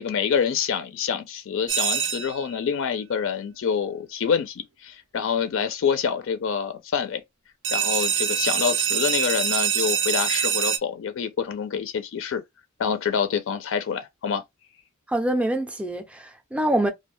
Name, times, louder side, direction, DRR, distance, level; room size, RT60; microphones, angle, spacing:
voice 1, 0.0-7.2 7.7-12.4 12.8-14.4, left 7 dB, 65° left, 0.4 m, -26 dB
sound 1, 1.7-2.5 7.6-10.8, right 8 dB, 65° right, 0.6 m, -24 dB
voice 2, 15.1-16.9, right 1 dB, 5° right, 0.4 m, -25 dB
2.4 x 2.2 x 3.0 m
head